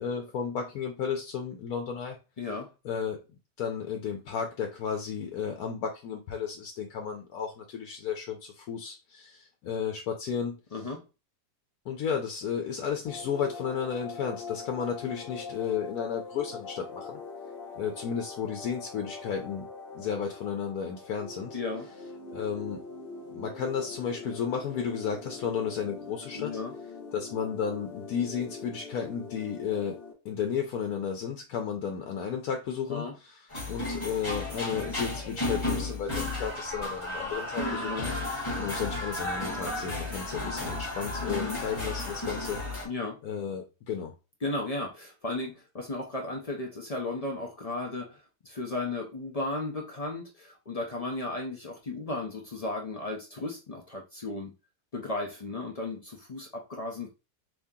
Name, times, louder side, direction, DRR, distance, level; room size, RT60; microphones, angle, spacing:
voice 1, 0.0-2.2 2.8-3.2 3.6-10.6 11.9-17.2 17.7-19.7 19.9-21.6 22.3-22.8 23.3-26.6 27.1-30.0 30.2-33.4 33.7-38.1 38.6-42.6 43.2-44.1, left 7 dB, 85° left, 3 dB, 1.1 m, -33 dB
voice 2, 2.4-2.7 10.7-11.0 21.5-21.9 26.3-26.7 32.9-33.1 37.8-38.1 41.2-41.6 42.8-43.2 44.4-54.5 54.9-57.1, left 2 dB, 60° left, 1 dB, 0.4 m, -35 dB
sound 1, 13.1-30.1, left 4 dB, 40° left, 1.1 m, -43 dB
sound 2, 33.5-42.8, left 2 dB, 20° left, 1.6 m, -33 dB
3.6 x 2.9 x 2.7 m, 0.29 s
omnidirectional pair, 1.5 m